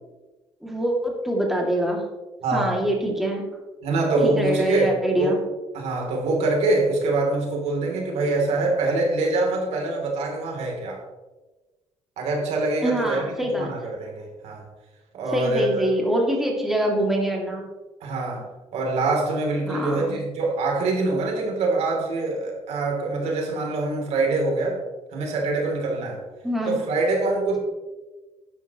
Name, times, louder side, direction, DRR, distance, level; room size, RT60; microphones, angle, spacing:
voice 1, 0.6-2.1 2.5-3.4 4.2-5.4 12.8-13.7 15.3-17.6 19.7-20.2 26.4-26.8, right 1 dB, ahead, -1 dB, 2.4 m, -24 dB
voice 2, 2.4-2.8 3.8-5.3 5.7-11.0 12.2-13.2 13.5-14.6 15.1-15.9 18.0-24.8 25.1-26.2 26.7-27.6, right 2 dB, 80° right, 0 dB, 3.0 m, -24 dB
12.0 x 10.0 x 3.0 m, 1.2 s
cardioid pair, 105°, 11 cm